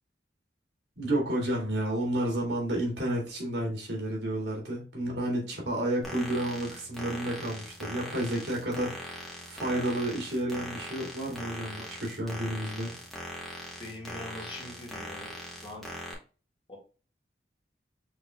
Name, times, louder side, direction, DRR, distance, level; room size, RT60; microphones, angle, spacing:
voice 1, 1.0-12.9, right 1 dB, 75° right, -2 dB, 2.2 m, -31 dB
sound 1, 6.0-16.1, equal, ahead, 1.1 m, -41 dB
voice 2, 13.8-15.9 16.7-16.8, left 1 dB, 30° left, -2 dB, 1.8 m, -43 dB
6.1 x 3.3 x 2.2 m, 0.36 s
head